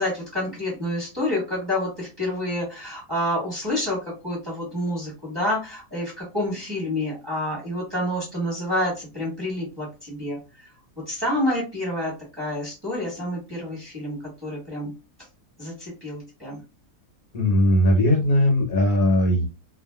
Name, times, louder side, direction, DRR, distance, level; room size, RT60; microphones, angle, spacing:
voice 1, 0.0-10.4 11.1-14.9 15.6-16.6, left 1 dB, 15° right, -5 dB, 1.2 m, -28 dB
voice 2, 17.3-19.5, left 1 dB, 65° left, 1 dB, 1.3 m, -19 dB
2.7 x 2.4 x 2.3 m, 0.29 s
omnidirectional pair, 1.7 m